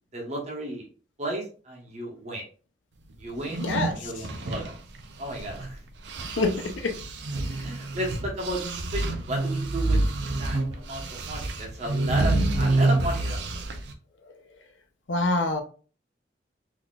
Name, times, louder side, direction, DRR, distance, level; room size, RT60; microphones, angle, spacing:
voice 1, 0.1-0.9 1.2-2.4 3.2-4.8 5.2-5.8 6.2-6.4 7.6-10.0 10.4-13.7, right 1 dB, 40° right, -1 dB, 1.2 m, -34 dB
sound 1, 3.4-5.7 6.0-13.9, right 2 dB, 70° right, 0.5 m, -28 dB
voice 2, 3.6-4.1 6.4-6.9 15.1-15.6, left 2 dB, 85° left, 4 dB, 0.7 m, -26 dB
4.0 x 3.0 x 2.4 m, 0.39 s
head